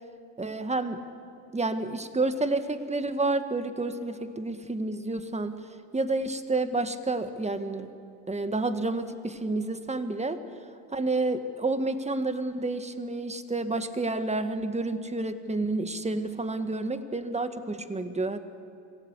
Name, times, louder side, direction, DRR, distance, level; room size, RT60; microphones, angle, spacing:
voice 1, 0.4-1.0 1.5-5.6 5.9-7.9 8.3-10.4 10.9-18.4, right 2 dB, 15° right, 9 dB, 1.8 m, -29 dB
26.0 x 16.0 x 8.3 m, 2.5 s
hypercardioid pair, 70°, 45 cm